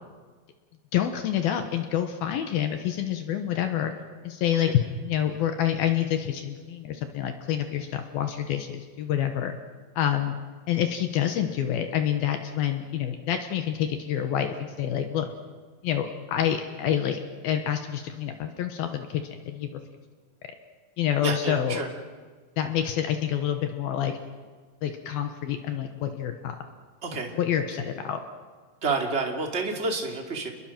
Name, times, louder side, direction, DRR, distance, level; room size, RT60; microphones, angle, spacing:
voice 1, 0.9-3.9 4.2-9.6 10.0-10.4 10.7-15.3 15.8-19.8 21.0-21.8 22.6-24.2 24.8-26.6 27.1-28.2, left 10 dB, 70° left, 6 dB, 3.0 m, -27 dB
voice 2, 21.2-21.9 27.0-27.3 28.8-30.5, right 3 dB, 20° right, 2 dB, 2.1 m, -29 dB
29.0 x 21.5 x 6.0 m, 1.5 s
omnidirectional pair, 4.7 m